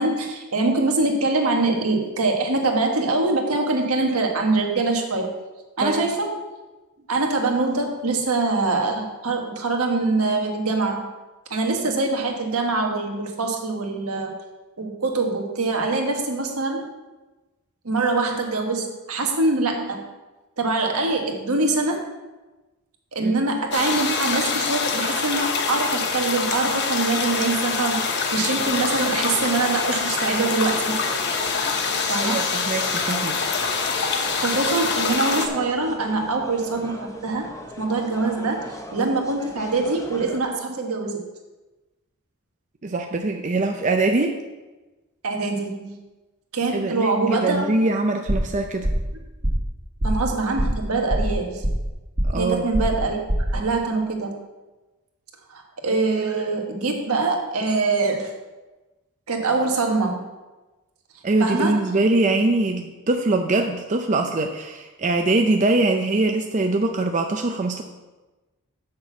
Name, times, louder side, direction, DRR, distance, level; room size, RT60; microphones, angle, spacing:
voice 1, 0.0-5.3 5.8-6.3 7.1-11.1 11.5-14.3 14.8-16.9 17.8-20.0 20.6-22.0 23.1-31.0 32.1-32.4 34.3-37.5 37.8-41.2 45.2-46.0 46.5-47.7 50.0-51.6 52.4-53.3 53.5-54.4 55.5-58.3 59.3-60.3 61.4-62.0, right 3 dB, 80° right, 1 dB, 1.5 m, -24 dB
sound 1, 23.7-35.5, left 5 dB, 50° left, 0.9 m, -25 dB
sound 2, 28.6-40.4, left 1 dB, 15° left, 0.7 m, -39 dB
voice 2, 32.2-33.4 42.8-44.4 46.7-48.9 52.3-52.7 61.2-67.8, right 2 dB, 35° right, 4 dB, 0.5 m, -22 dB
sound 3, 48.3-48.6 48.8-49.1 49.4-49.7 50.0-50.3 50.6-50.8 51.1-51.9 52.2-52.5 52.7-53.0 53.3-53.6, right 1 dB, 50° right, 2.1 m, -24 dB
6.5 x 6.0 x 7.1 m, 1.1 s
head